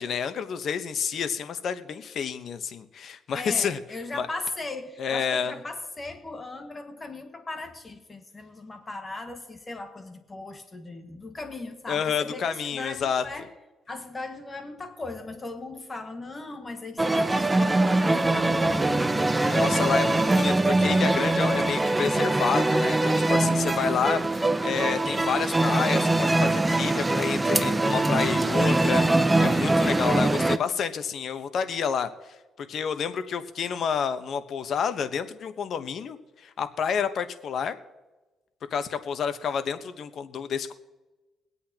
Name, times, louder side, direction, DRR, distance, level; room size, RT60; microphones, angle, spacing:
voice 1, 0.0-3.8 4.1-4.3 5.0-5.5 11.9-13.2 19.4-37.8 38.7-40.7, left 7 dB, 60° left, 11 dB, 1.0 m, -29 dB
voice 2, 3.3-13.5 13.9-19.9 23.8-24.3, left 2 dB, 25° left, 5 dB, 1.6 m, -38 dB
sound 1, 17.0-30.6, right 2 dB, 15° right, 0.6 m, -23 dB
23.5 x 8.5 x 2.9 m, 1.2 s
cardioid pair, 90°, 0 cm